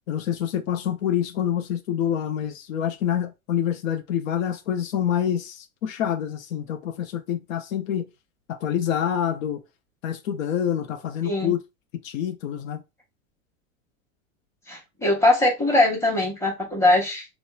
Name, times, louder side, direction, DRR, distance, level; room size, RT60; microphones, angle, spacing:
voice 1, 0.1-8.1 8.5-9.6 10.0-11.6 12.0-12.8, left 9 dB, 75° left, 0.6 m, -26 dB
voice 2, 11.2-11.5 14.7-17.3, left 2 dB, 5° left, 0.9 m, -21 dB
2.9 x 2.1 x 2.2 m
hypercardioid pair, 110°, 40 cm